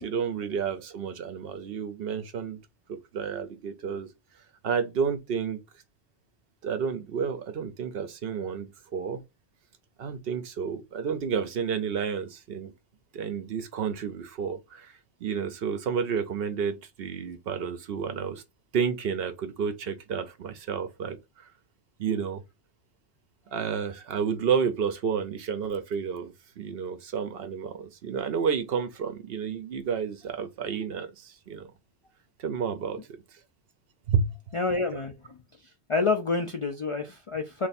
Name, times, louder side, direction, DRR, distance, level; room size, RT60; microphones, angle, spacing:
voice 1, 0.0-2.6 2.9-4.1 4.6-5.6 6.6-9.2 10.0-12.7 13.1-14.9 15.2-18.4 18.7-21.5 22.0-22.4 23.5-31.7 32.4-33.2 34.1-34.3, right 6 dB, 70° right, 0.8 m, -30 dB
voice 2, 34.5-35.4 35.9-37.7, left 4 dB, 55° left, 0.3 m, -28 dB
3.3 x 2.6 x 4.1 m
omnidirectional pair, 1.1 m